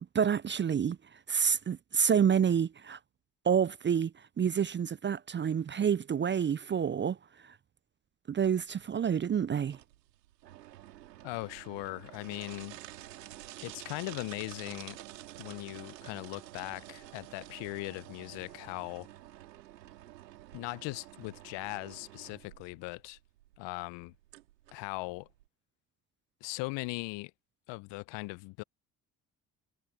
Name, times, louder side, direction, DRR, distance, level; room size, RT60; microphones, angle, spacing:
voice 1, 0.1-1.0 1.3-3.0 3.4-4.1 4.4-7.2 8.3-9.8, right 7 dB, 25° right, 0.6 m, -28 dB
sound 1, 8.4-25.5, right 14 dB, 80° right, 3.4 m, -50 dB
voice 2, 11.2-12.8 13.6-15.0 15.4-19.1 20.5-23.2 23.6-24.1 24.7-25.3 26.4-27.3 27.7-28.6, left 25 dB, 60° left, 1.0 m, -39 dB
figure-of-eight pair, 55°, 49 cm